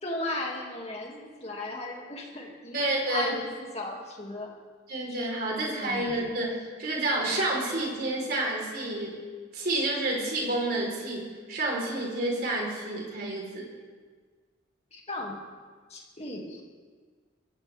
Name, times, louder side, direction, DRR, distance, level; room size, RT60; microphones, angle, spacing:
voice 1, 0.0-4.5 5.5-6.1 14.9-15.4 15.9-16.6, left 2 dB, 35° left, -1 dB, 2.5 m, -36 dB
voice 2, 2.7-3.4 4.9-9.2 9.5-13.7, right 2 dB, 55° right, -2 dB, 4.3 m, -29 dB
23.5 x 14.5 x 3.6 m, 1.5 s
head